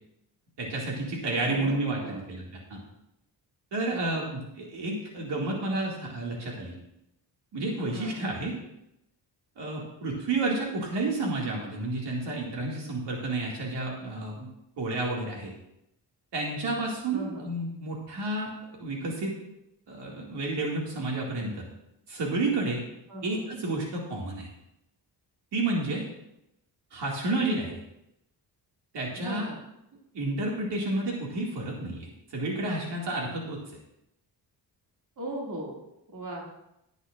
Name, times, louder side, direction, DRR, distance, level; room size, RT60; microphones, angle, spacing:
voice 1, 0.6-2.4 2.7-2.8 3.7-6.8 7.5-8.5 9.6-14.5 14.8-15.5 16.3-18.5 18.8-19.3 19.9-21.6 22.1-22.8 23.2-24.5 25.5-26.0 26.9-27.8 28.9-29.5 30.1-33.6, right 2 dB, 75° right, -2 dB, 2.4 m, -30 dB
voice 2, 1.3-2.2 3.9-4.3 7.9-8.3 17.1-17.5 23.1-23.5 29.2-29.6 35.2-35.8 36.1-36.5, right 1 dB, 45° right, -2 dB, 2.6 m, -38 dB
19.0 x 8.1 x 2.5 m, 0.84 s
wide cardioid pair, 160°, 42 cm